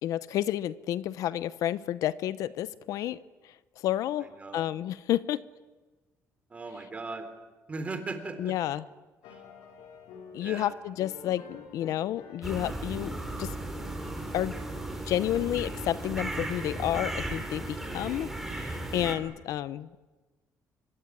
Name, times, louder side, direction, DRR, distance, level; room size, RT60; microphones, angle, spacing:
voice 1, 0.0-3.2 3.4-5.4 8.4-8.8 10.3-13.1 13.4-13.5 14.3-14.5 15.1-19.9, left 12 dB, 70° left, 17 dB, 0.8 m, -30 dB
voice 2, 4.2-4.6 6.5-7.3 7.7-8.5 9.3-9.4 10.4-10.7, right 3 dB, 20° right, 8 dB, 3.8 m, -38 dB
sound 1, 9.2-14.5, left 5 dB, 85° left, 5.1 m, -50 dB
sound 2, 12.4-19.1, right 1 dB, 5° right, 4.4 m, -36 dB
25.5 x 23.0 x 9.7 m, 1.3 s
cardioid pair, 140°, 6 cm